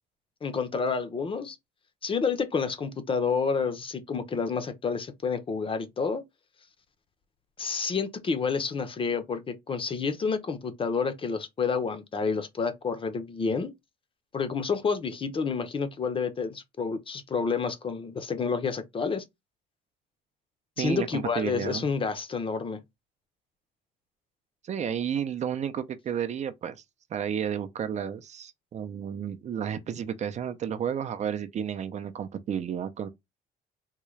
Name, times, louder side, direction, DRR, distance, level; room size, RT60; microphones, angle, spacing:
voice 1, 0.4-1.6 2.0-6.2 7.6-13.7 14.3-19.2 20.8-22.8, left 5 dB, 30° left, 0.7 m, -29 dB
voice 2, 20.8-21.9 24.6-26.8 27.1-33.1, right 8 dB, 45° right, 0.5 m, -32 dB
3.7 x 2.3 x 3.1 m
cardioid pair, 110°, 17 cm